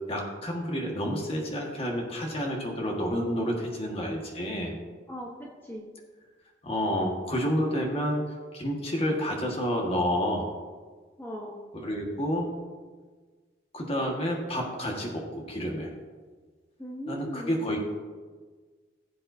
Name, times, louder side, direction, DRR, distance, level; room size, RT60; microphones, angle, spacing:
voice 1, 0.1-4.7 6.6-10.5 11.7-12.5 13.7-15.9 17.1-17.9, equal, 30° left, 0 dB, 1.6 m, -29 dB
voice 2, 5.1-5.9 11.2-11.6 16.8-17.7, equal, 10° left, -2 dB, 1.0 m, -39 dB
16.5 x 7.6 x 2.7 m, 1.4 s
head